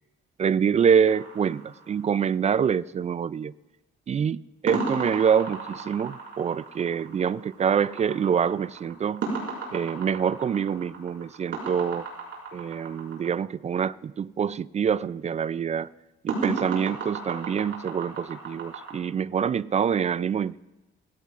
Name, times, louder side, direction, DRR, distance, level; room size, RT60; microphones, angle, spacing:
voice 1, 0.4-3.5 4.1-9.3 9.7-12.1 12.5-15.9 16.2-20.6, right 7 dB, 35° right, 0.4 m, -25 dB
sound 1, 1.1-2.5 4.7-13.3 16.3-18.9, right 4 dB, 70° right, 5.3 m, -34 dB
20.5 x 16.5 x 2.5 m
cardioid pair, 90°, 20 cm